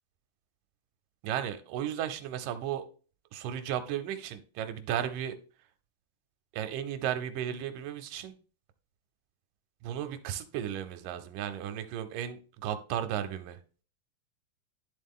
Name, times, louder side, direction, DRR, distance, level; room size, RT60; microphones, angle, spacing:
voice 1, 1.2-2.8 3.3-5.4 6.5-8.3 9.8-13.6, right 10 dB, 80° right, 2.1 m, -34 dB
10.5 x 3.6 x 3.6 m
omnidirectional pair, 3.9 m